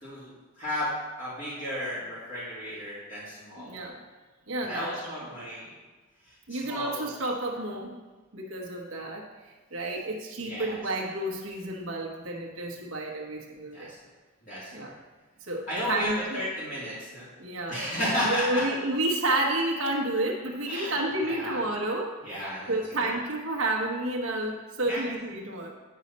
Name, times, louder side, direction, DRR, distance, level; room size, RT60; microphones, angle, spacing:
voice 1, 0.0-0.9 1.2-3.7 4.6-5.7 6.5-7.1 10.4-10.8 13.7-13.9 14.4-15.0 15.7-17.3 17.7-18.6 20.7-20.9 21.2-21.6 22.2-23.1 24.8-25.0, left 1 dB, 35° left, -9 dB, 2.0 m, -33 dB
voice 2, 3.6-4.0 4.5-5.1 6.5-8.0 8.3-9.3 9.7-13.9 14.7-14.9 15.5-16.4 17.4-17.8 18.2-22.2 22.7-25.8, right 1 dB, 70° right, 0 dB, 1.0 m, -30 dB
9.4 x 5.6 x 4.1 m, 1.3 s
head